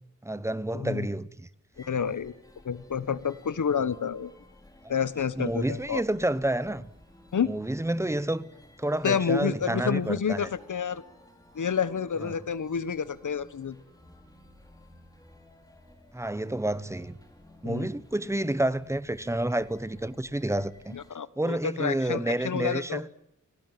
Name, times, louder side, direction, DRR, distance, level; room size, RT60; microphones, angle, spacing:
voice 1, 0.2-1.5 5.4-6.9 7.5-8.5 8.8-10.5 12.2-12.4 16.1-17.2 17.6-21.0 21.4-23.1, right 1 dB, 10° right, 1.1 m, -29 dB
voice 2, 0.7-1.1 1.8-2.4 2.6-4.3 4.9-6.0 7.3-7.5 9.0-11.0 11.5-13.8 17.6-17.9 20.9-23.0, left 7 dB, 80° left, 1.4 m, -29 dB
sound 1, 1.7-21.1, left 1 dB, 10° left, 4.9 m, -55 dB
29.5 x 18.5 x 9.3 m
wide cardioid pair, 115°, 30 cm